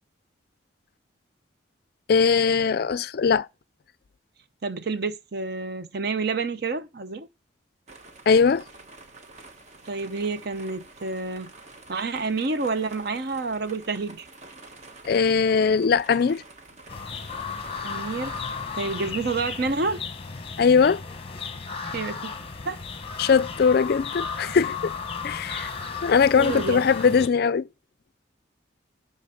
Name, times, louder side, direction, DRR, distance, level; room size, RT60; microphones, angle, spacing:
voice 1, 2.1-3.5 8.3-8.6 15.0-16.4 20.6-21.0 23.2-24.9 25.2-25.7 26.0-27.7, left 5 dB, 50° left, 0.3 m, -20 dB
voice 2, 4.6-7.3 9.9-11.5 11.9-14.3 17.8-18.3 18.7-20.0 21.9-22.3 22.6-22.8 26.4-27.2, right 4 dB, 55° right, 0.7 m, -29 dB
sound 1, 7.9-19.1, right 2 dB, 35° right, 1.1 m, -48 dB
sound 2, 16.9-27.3, left 5 dB, 30° left, 0.9 m, -34 dB
11.5 x 4.0 x 5.6 m
head